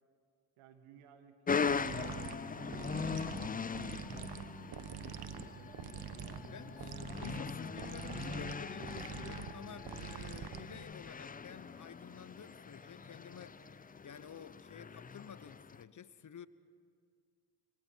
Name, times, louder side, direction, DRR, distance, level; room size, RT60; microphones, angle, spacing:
voice 1, 0.6-3.3 3.9-4.6 4.8-6.4, right 8 dB, 75° right, 1.9 m, -60 dB
sound 1, 1.5-13.7, left 2 dB, 80° left, 7.9 m, -59 dB
sound 2, 1.5-15.8, left 5 dB, 20° left, 0.5 m, -40 dB
sound 3, 1.7-10.9, right 9 dB, 50° right, 1.2 m, -46 dB
voice 2, 6.5-16.5, left 8 dB, 35° left, 0.9 m, -51 dB
26.0 x 25.0 x 4.6 m
hypercardioid pair, 55°, 50 cm